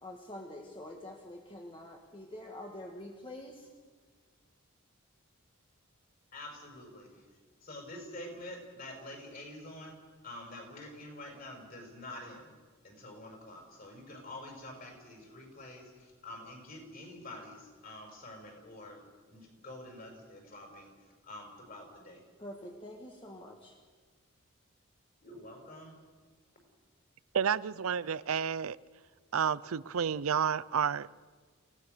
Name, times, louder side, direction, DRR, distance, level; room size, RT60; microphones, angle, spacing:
voice 1, 0.0-3.7 22.4-23.8, left 1 dB, 25° left, 1 dB, 1.7 m, -46 dB
voice 2, 6.3-7.1 7.6-10.0 10.2-12.5 12.8-19.0 19.3-20.9 21.2-22.2 25.2-26.0, left 1 dB, 45° left, 2 dB, 5.7 m, -47 dB
voice 3, 27.3-28.8 29.3-31.1, right 7 dB, 85° right, 19 dB, 0.5 m, -30 dB
28.5 x 16.5 x 6.8 m, 1.5 s
head